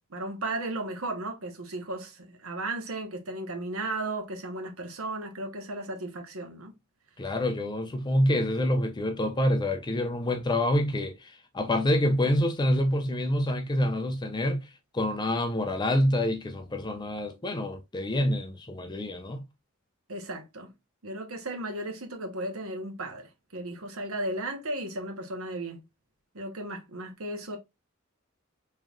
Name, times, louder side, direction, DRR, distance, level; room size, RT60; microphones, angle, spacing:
voice 1, 0.1-6.7 20.1-20.7 21.0-25.8 26.3-27.6, right 2 dB, 90° right, 1.1 m, -35 dB
voice 2, 7.2-14.6 14.9-19.4, left 1 dB, 20° left, 0.5 m, -27 dB
3.7 x 3.2 x 2.4 m
head